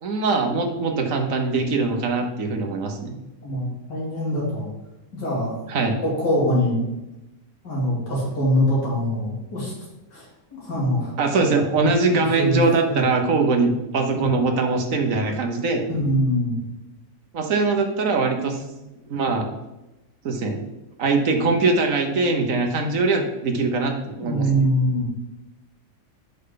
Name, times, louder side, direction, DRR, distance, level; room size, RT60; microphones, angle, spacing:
voice 1, 0.0-3.1 5.7-6.0 11.2-15.8 17.3-18.6 19.1-19.5 20.2-20.6 21.0-24.6, right 3 dB, 50° right, 4 dB, 1.2 m, -22 dB
voice 2, 3.4-4.7 5.1-5.7 6.0-6.8 7.6-9.7 10.1-10.3 10.5-11.1 12.1-12.6 12.9-13.0 14.1-14.2 15.9-16.6 24.2-25.1, equal, 65° left, -6 dB, 3.4 m, -23 dB
7.6 x 5.4 x 3.8 m, 0.99 s
omnidirectional pair, 2.0 m